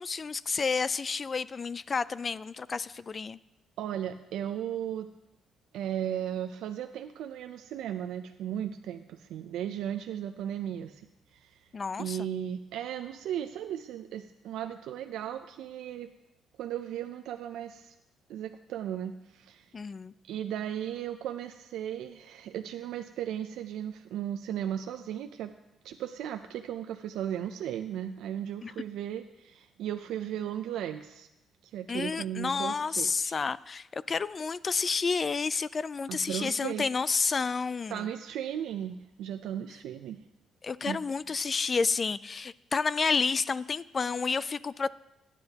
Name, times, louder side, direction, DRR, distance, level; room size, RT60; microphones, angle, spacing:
voice 1, 0.0-3.4 11.7-12.2 19.7-20.1 28.6-28.7 31.9-38.0 40.6-44.9, left 5 dB, 35° left, 18 dB, 0.3 m, -30 dB
voice 2, 3.8-5.1 5.7-11.7 12.0-16.1 16.6-18.0 18.3-19.7 20.3-25.5 25.8-31.3 31.6-33.4 36.1-36.9 37.9-40.2 40.9-41.0, right 10 dB, 85° right, 7 dB, 0.4 m, -36 dB
17.0 x 9.8 x 2.9 m, 0.91 s
cardioid pair, 90°, 0 cm